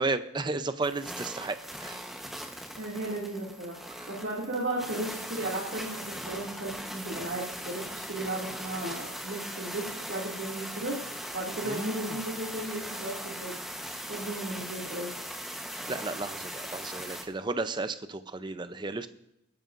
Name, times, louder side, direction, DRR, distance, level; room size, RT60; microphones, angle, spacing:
voice 1, 0.0-2.1 4.0-4.1 11.7-12.2 15.9-19.1, right 3 dB, 25° right, 11 dB, 0.6 m, -33 dB
sound 1, 0.8-17.2, equal, ahead, 1.1 m, -39 dB
voice 2, 2.8-11.0 11.3-13.5 14.1-15.1, right 1 dB, 65° right, -6 dB, 2.5 m, -35 dB
24.5 x 10.5 x 2.6 m, 0.82 s
head